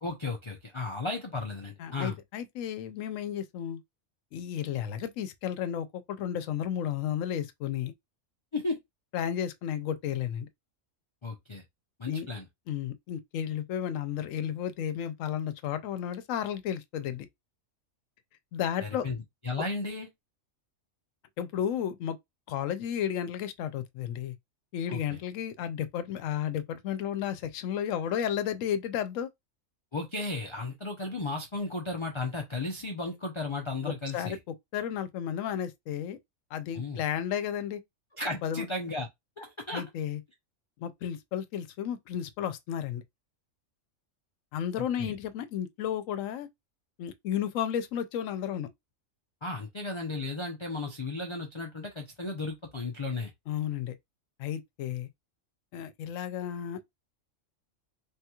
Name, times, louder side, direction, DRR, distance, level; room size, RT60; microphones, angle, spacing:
voice 1, 0.0-2.2 8.5-8.8 11.2-11.6 12.0-12.5 18.8-19.2 19.4-20.1 24.9-25.2 29.9-34.4 36.8-37.0 38.2-39.1 39.4-39.8 44.8-45.1 49.4-53.3, left 3 dB, 40° left, 0.4 m, -34 dB
voice 2, 1.8-3.8 4.3-7.9 9.1-10.5 12.1-12.3 12.7-17.3 18.5-19.1 21.4-22.2 22.5-24.4 24.7-29.3 33.8-34.4 34.7-36.2 36.5-37.8 38.4-38.7 39.7-40.2 40.8-43.0 44.5-46.5 47.0-48.7 53.5-54.0 54.4-55.1 55.7-56.9, left 9 dB, 80° left, 0.9 m, -33 dB
3.4 x 2.9 x 2.3 m
omnidirectional pair, 1.4 m